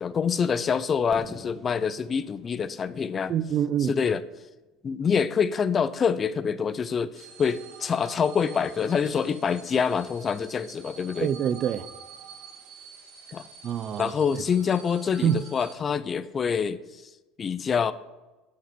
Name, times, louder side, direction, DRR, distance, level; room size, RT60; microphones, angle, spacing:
voice 1, 0.0-3.3 3.8-4.2 4.8-11.3 13.3-13.5 14.0-17.0 17.4-17.9, left 6 dB, 30° left, 0.5 m, -26 dB
Fireworks, 1.1-5.0, equal, ahead, 1.3 m, -49 dB
voice 2, 3.3-3.9 11.2-11.9 13.6-14.4 15.2-15.4, right 9 dB, 45° right, 0.5 m, -26 dB
sound 1, 7.1-15.7, right 6 dB, 80° right, 2.4 m, -47 dB
11.0 x 5.8 x 7.6 m
supercardioid pair, 120°, 0 cm